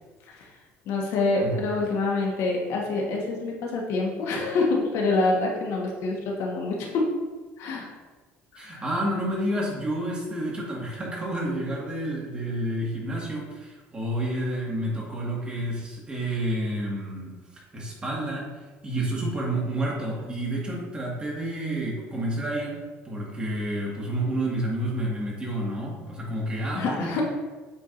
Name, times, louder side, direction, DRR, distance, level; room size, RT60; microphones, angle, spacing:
voice 1, 0.9-7.1 7.6-7.9 8.5-8.8 26.7-27.2, left 3 dB, 65° left, -1 dB, 1.3 m, -26 dB
voice 2, 8.6-17.4 17.7-18.5 18.8-27.2, right 1 dB, 20° right, -3 dB, 1.8 m, -29 dB
8.5 x 4.7 x 2.6 m, 1.3 s
cardioid pair, 110°, 5 cm